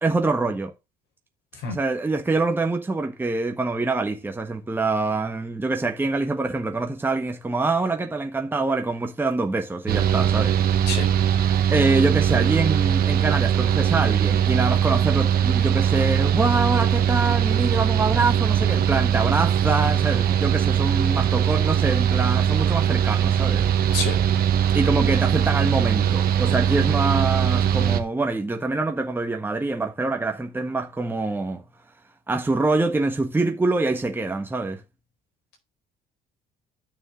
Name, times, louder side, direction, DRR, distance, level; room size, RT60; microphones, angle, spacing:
voice 1, 0.0-0.7 1.7-10.6 11.7-23.7 24.7-31.6 32.3-34.8, right 3 dB, 10° right, 1.3 m, -25 dB
voice 2, 1.5-1.8 10.9-11.1 23.9-24.2, left 4 dB, 85° left, 4.3 m, -27 dB
Mechanical fan, 9.9-28.0, right 9 dB, 60° right, 1.2 m, -21 dB
11.5 x 6.4 x 3.8 m
cardioid pair, 110°, 17 cm